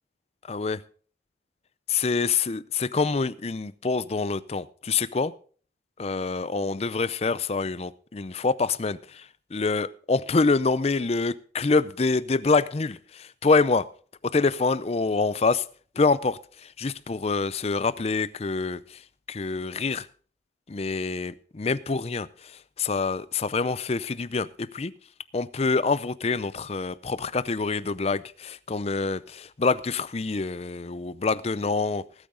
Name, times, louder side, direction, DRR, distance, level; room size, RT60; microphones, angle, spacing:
voice 1, 0.5-0.8 1.9-5.3 6.0-9.2 9.5-13.8 14.3-15.6 16.0-16.4 16.8-18.8 19.3-20.1 20.7-22.3 22.8-24.9 25.3-32.0, left 4 dB, 35° left, 0.5 m, -26 dB
20.0 x 8.7 x 3.8 m
head